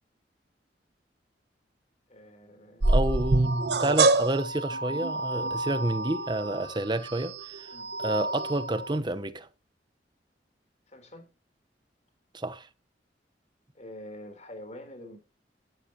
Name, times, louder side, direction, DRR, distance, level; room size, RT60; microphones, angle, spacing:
voice 1, 2.1-3.1 7.7-8.0 10.9-11.3 13.7-15.2, left 1 dB, 40° left, 3.7 m, -46 dB
sound 1, 2.8-9.0, right 2 dB, 65° right, 1.0 m, -27 dB
voice 2, 2.9-7.7 8.0-9.5 12.3-12.7, right 1 dB, 25° right, 1.0 m, -29 dB
13.5 x 11.5 x 2.9 m
head